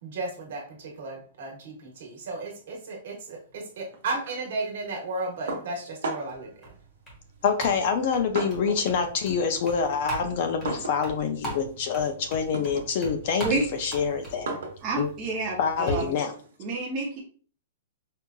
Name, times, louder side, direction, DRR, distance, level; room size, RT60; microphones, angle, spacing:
voice 1, 0.0-6.6, right 2 dB, 55° right, -1 dB, 1.2 m, -34 dB
sound 1, 5.5-6.5 7.4-8.9 9.3-16.6, right 3 dB, 85° right, 1.0 m, -38 dB
sound 2, 6.3-15.9, right 2 dB, 10° left, 1.0 m, -40 dB
voice 2, 7.4-14.5 14.9-15.1 15.6-16.3, left 6 dB, 40° left, 7 dB, 0.4 m, -26 dB
voice 3, 14.8-16.1 16.6-17.2, right 3 dB, 20° right, -3 dB, 0.6 m, -29 dB
4.5 x 2.4 x 2.2 m, 0.43 s
hypercardioid pair, 175°, 0 cm